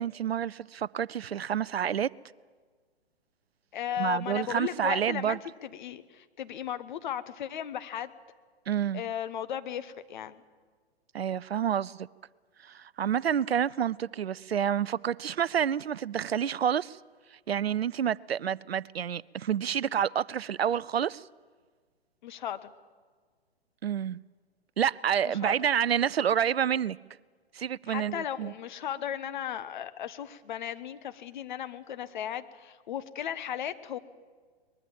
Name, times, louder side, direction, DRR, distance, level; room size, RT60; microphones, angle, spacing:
voice 1, 0.0-2.1 4.0-5.4 8.7-9.0 11.1-12.1 12.6-17.0 17.5-21.2 23.8-24.2 24.8-27.0 27.5-28.5, right 9 dB, 70° right, 0.5 m, -28 dB
voice 2, 3.7-8.1 8.9-10.4 22.2-22.7 25.2-25.6 27.9-34.0, left 10 dB, 45° left, 1.2 m, -36 dB
22.5 x 21.0 x 7.5 m
figure-of-eight pair, 120°, 32 cm